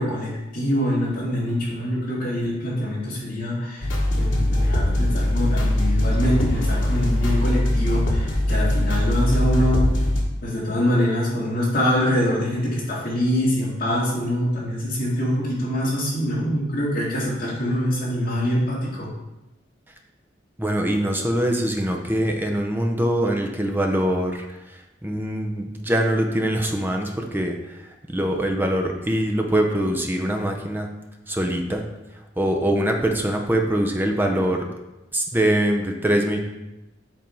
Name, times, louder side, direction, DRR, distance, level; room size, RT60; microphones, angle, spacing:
voice 1, 0.0-3.9 4.1-9.9 10.4-19.1, equal, 50° left, -6 dB, 2.4 m, -24 dB
sound 1, 3.8-10.2, left 1 dB, 90° left, 1.2 m, -21 dB
voice 2, 20.6-30.9 31.3-31.8 32.4-34.7 35.1-36.4, right 1 dB, 10° right, 3 dB, 0.7 m, -23 dB
7.6 x 3.5 x 4.4 m, 0.98 s
head